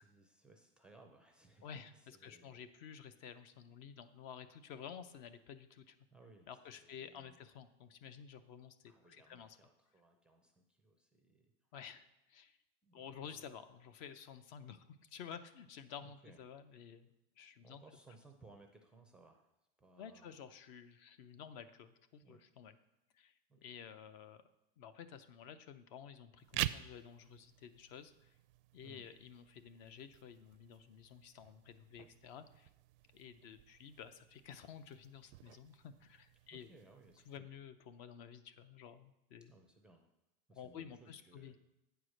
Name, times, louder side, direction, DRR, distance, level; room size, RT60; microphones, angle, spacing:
voice 1, 0.0-2.7 6.1-7.4 8.9-11.5 12.8-13.4 16.0-16.4 17.6-19.5 19.8-20.4 22.2-22.4 23.5-23.8 28.8-29.1 36.5-37.5 39.5-40.1 40.5-41.6, right 3 dB, 5° right, 3 dB, 0.4 m, -62 dB
voice 2, 2.2-6.0 6.5-9.6 11.7-12.6 12.9-17.8 20.0-22.7 23.1-24.4 24.8-28.3 28.7-32.7 33.1-36.7 37.3-39.5 40.5-41.6, left 8 dB, 50° left, 12 dB, 0.6 m, -52 dB
sound 1, 26.4-37.4, right 16 dB, 70° right, 0.4 m, -48 dB
8.8 x 4.7 x 6.4 m, 0.90 s
supercardioid pair, 160°, 29 cm